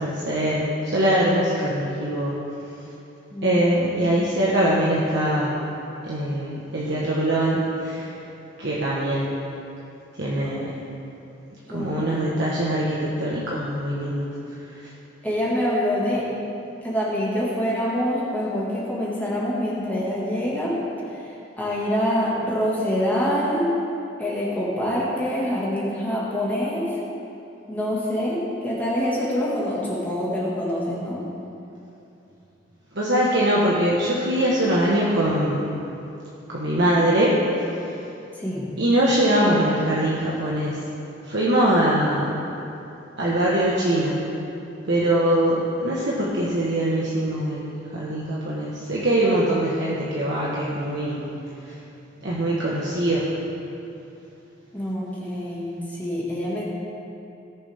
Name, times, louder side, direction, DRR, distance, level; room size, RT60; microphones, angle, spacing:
voice 1, 0.0-2.3 3.4-5.6 6.0-8.1 8.6-9.3 10.2-10.7 11.7-14.3 14.8-14.9 32.9-35.6 36.5-37.4 38.8-40.8 41.3-42.3 43.2-44.2 44.8-51.2 52.2-53.3, right 1 dB, 60° right, -6 dB, 1.3 m, -22 dB
voice 2, 3.3-4.3 11.7-12.3 15.2-16.3 16.8-20.8 21.1-23.7 24.2-27.0 27.7-31.2 38.4-38.7 54.7-56.6, equal, 10° left, -7 dB, 1.9 m, -26 dB
18.0 x 7.0 x 3.6 m, 2.8 s
head